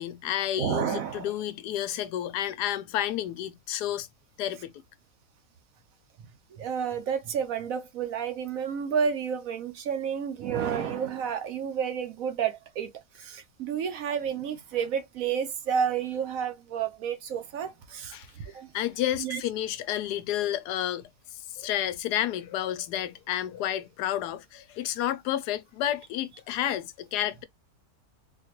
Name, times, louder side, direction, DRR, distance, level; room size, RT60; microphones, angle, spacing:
voice 1, 0.0-4.1 4.4-4.8 18.1-18.3 18.7-27.4, left 12 dB, 85° left, 1.1 m, -31 dB
voice 2, 0.6-1.3 6.2-18.7 19.1-19.4, right 7 dB, 65° right, 1.0 m, -31 dB
4.1 x 2.3 x 2.9 m
omnidirectional pair, 1.7 m